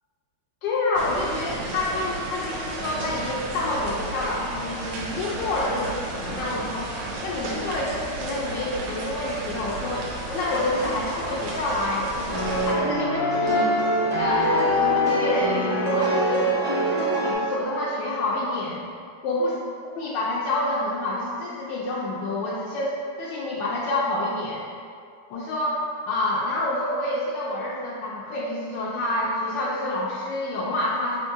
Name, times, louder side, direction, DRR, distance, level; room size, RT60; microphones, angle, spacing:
voice 1, 0.6-6.9 7.2-13.7 14.1-18.8 19.2-19.6 20.0-24.6 25.3-31.2, left 2 dB, 85° left, -6 dB, 1.3 m, -28 dB
sound 1, 0.9-12.7, right 2 dB, 90° right, 1.3 m, -33 dB
sound 2, 12.3-17.3, equal, 40° right, 1.1 m, -23 dB
3.6 x 3.0 x 4.4 m, 2.3 s
omnidirectional pair, 1.9 m